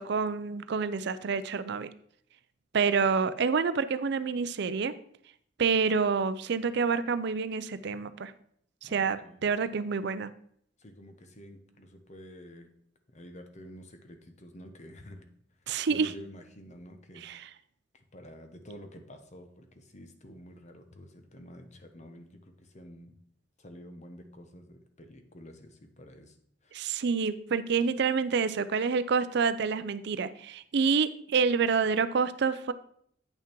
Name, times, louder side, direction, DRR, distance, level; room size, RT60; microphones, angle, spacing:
voice 1, 0.0-1.9 2.7-4.9 5.6-8.3 8.8-10.3 15.7-16.1 17.2-17.5 26.7-32.7, right 5 dB, 65° right, 14 dB, 0.5 m, -28 dB
voice 2, 8.9-9.5 10.8-12.7 13.1-15.3 15.9-17.2 17.9-22.3 22.6-23.2 23.6-26.4 26.6-26.8, equal, 40° left, 6 dB, 1.0 m, -49 dB
8.8 x 5.9 x 4.5 m, 0.64 s
head